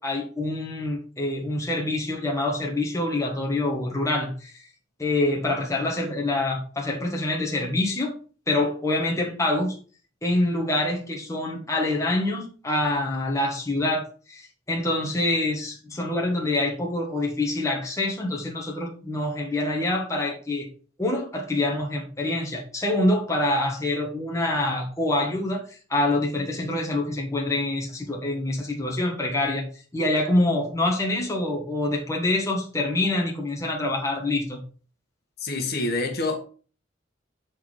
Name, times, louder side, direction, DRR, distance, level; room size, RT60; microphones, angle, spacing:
voice 1, 0.0-4.5 5.0-8.1 8.5-9.8 10.2-20.7 21.0-25.6 25.9-29.6 29.9-34.6, left 2 dB, 15° left, 1.3 m, -26 dB
voice 2, 35.4-36.4, left 2 dB, 55° left, 1.6 m, -26 dB
8.1 x 4.2 x 4.9 m
head